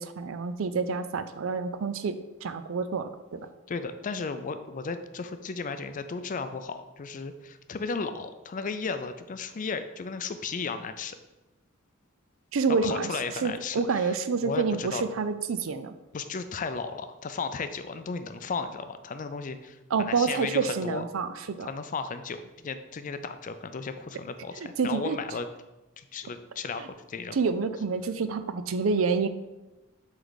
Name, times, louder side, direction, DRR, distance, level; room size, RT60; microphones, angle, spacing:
voice 1, 0.0-3.5 12.5-13.1 13.4-15.9 19.9-21.7 24.8-25.2 27.3-29.3, right 5 dB, 70° right, 11 dB, 0.4 m, -28 dB
voice 2, 3.7-11.2 12.8-14.1 14.4-15.0 16.1-21.0 21.6-25.5 26.0-27.4, left 4 dB, 40° left, 10 dB, 0.4 m, -35 dB
7.9 x 3.3 x 4.0 m, 1.0 s
head